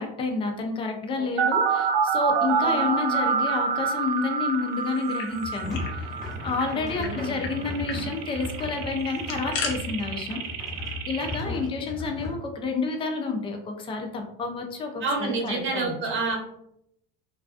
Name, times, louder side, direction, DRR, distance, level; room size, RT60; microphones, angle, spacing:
voice 1, 0.0-6.1 6.4-10.4 11.1-15.9, left 4 dB, 20° left, 4 dB, 0.3 m, -29 dB
sound 1, 1.4-11.4, right 6 dB, 75° right, 0.5 m, -27 dB
voice 2, 2.5-2.9 6.7-7.4 11.4-11.6 15.0-16.3, right 3 dB, 40° right, 0 dB, 0.8 m, -30 dB
sound 2, 4.9-6.0 6.2-6.3 6.6-7.1 7.4-7.5 7.8-8.0 9.0-9.7, left 5 dB, 70° left, 0.7 m, -34 dB
sound 3, 5.3-12.4, left 2 dB, ahead, 0.7 m, -36 dB
2.4 x 2.3 x 2.3 m, 0.77 s
supercardioid pair, 125°, 29 cm